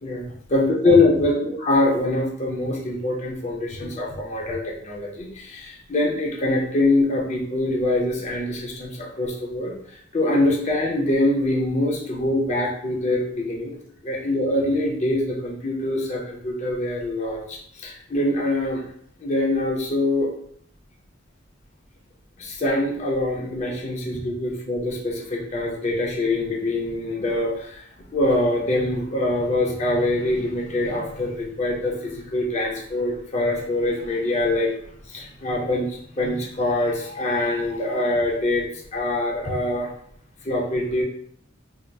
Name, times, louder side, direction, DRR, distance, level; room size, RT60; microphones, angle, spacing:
voice 1, 0.0-9.7 10.1-13.8 14.0-18.8 19.2-20.3 22.4-27.8 28.1-34.7 35.1-35.9 36.2-38.7 38.9-39.9 40.5-41.0, left 2 dB, 35° left, -2 dB, 0.5 m, -24 dB
3.3 x 2.8 x 2.3 m, 0.65 s
head